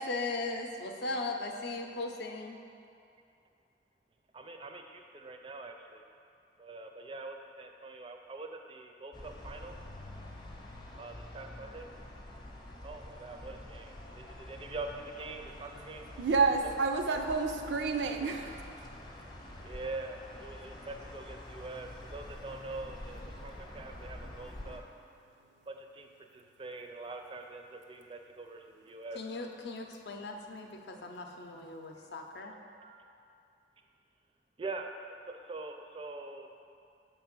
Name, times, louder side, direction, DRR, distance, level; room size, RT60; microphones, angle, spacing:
voice 1, 0.0-2.6 29.1-32.6, left 2 dB, 70° left, 3 dB, 0.6 m, -38 dB
voice 2, 4.3-6.1 6.6-9.8 10.9-11.9 12.8-16.1 16.6-16.7 18.4-18.7 19.6-24.8 25.7-29.2 31.9-32.1 32.5-33.3 34.6-36.5, right 3 dB, 30° right, 4 dB, 0.4 m, -44 dB
sound 1, 9.1-24.8, left 1 dB, 25° left, 0.6 m, -47 dB
voice 3, 16.2-18.6, right 4 dB, 90° right, 5 dB, 0.5 m, -29 dB
6.4 x 3.4 x 5.9 m, 2.6 s
head